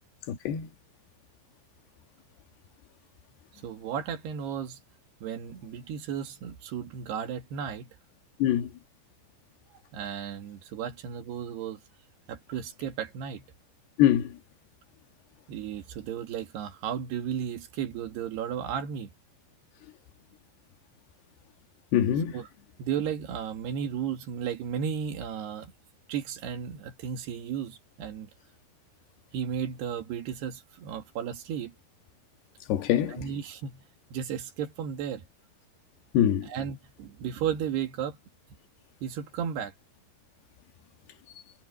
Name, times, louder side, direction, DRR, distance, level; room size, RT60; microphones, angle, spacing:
voice 1, 0.3-0.7 8.4-8.7 14.0-14.3 21.9-22.3 32.7-33.2 36.1-36.5, left 11 dB, 80° left, 3.6 m, -23 dB
voice 2, 3.6-4.8 5.2-7.9 9.9-11.8 12.3-13.5 15.5-19.1 22.3-22.5 22.8-25.7 26.1-28.3 29.3-31.7 33.1-33.8 34.1-35.3 36.4-38.2 39.0-39.7, right 8 dB, 80° right, 4.0 m, -34 dB
omnidirectional pair, 4.7 m